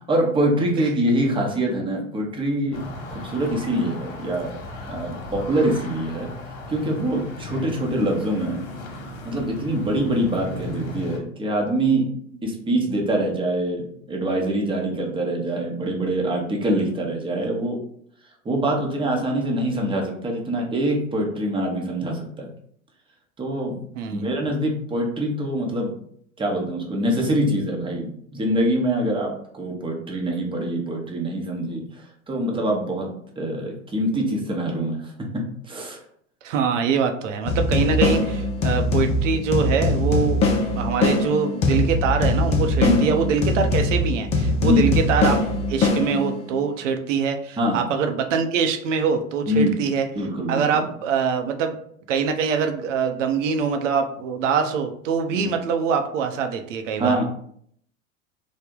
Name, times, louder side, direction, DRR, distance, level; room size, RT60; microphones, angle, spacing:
voice 1, 0.1-2.8 3.2-4.5 4.8-6.3 6.7-8.6 9.3-12.0 12.4-17.8 18.4-22.5 23.4-23.8 24.1-25.9 26.4-31.8 32.3-33.1 33.4-35.1 35.7-36.0 42.8-43.1 44.6-45.0 47.6-47.8 49.5-49.7 50.2-50.9 55.3-55.5 57.0-57.2, right 1 dB, 15° right, 0 dB, 0.7 m, -24 dB
sound 1, 2.7-11.2, left 2 dB, 60° left, 1.0 m, -36 dB
voice 2, 23.9-24.3 36.4-40.4 40.8-45.4 45.7-50.1 50.5-51.8 52.1-57.2, right 6 dB, 65° right, 5 dB, 0.6 m, -24 dB
sound 2, 37.4-46.6, left 2 dB, 20° left, 0.3 m, -22 dB
3.3 x 2.1 x 3.6 m, 0.65 s
hypercardioid pair, 85°, 39 cm